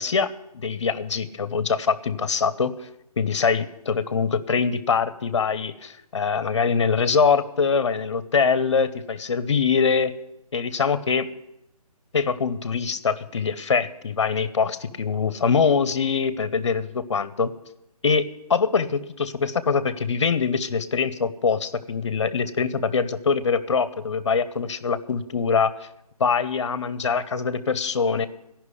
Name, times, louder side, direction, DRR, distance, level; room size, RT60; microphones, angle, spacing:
voice 1, 0.0-2.7 3.2-10.1 10.5-11.3 12.1-17.5 18.0-25.7 26.2-28.3, left 5 dB, 50° left, 14 dB, 0.8 m, -23 dB
14.5 x 5.9 x 9.8 m, 0.83 s
hypercardioid pair, 175°, 20 cm